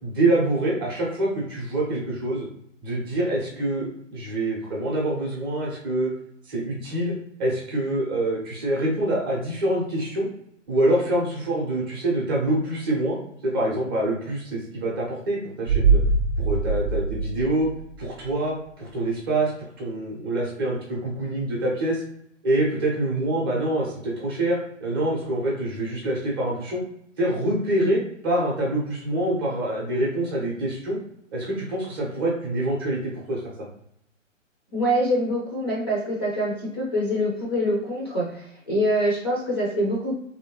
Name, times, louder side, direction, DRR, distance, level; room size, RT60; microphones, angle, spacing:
voice 1, 0.0-2.5 2.8-6.1 6.4-7.1 7.4-10.3 10.7-13.2 13.4-16.0 16.4-17.7 18.0-22.0 22.4-26.8 27.2-31.0 31.3-33.4, right 1 dB, 20° right, -4 dB, 0.6 m, -25 dB
sound 1, 15.7-18.4 18.7-18.8, right 4 dB, 80° right, 0.5 m, -23 dB
voice 2, 34.7-40.2, equal, 20° left, -4 dB, 0.5 m, -25 dB
3.2 x 2.7 x 2.9 m, 0.73 s
figure-of-eight pair, 135°, 39 cm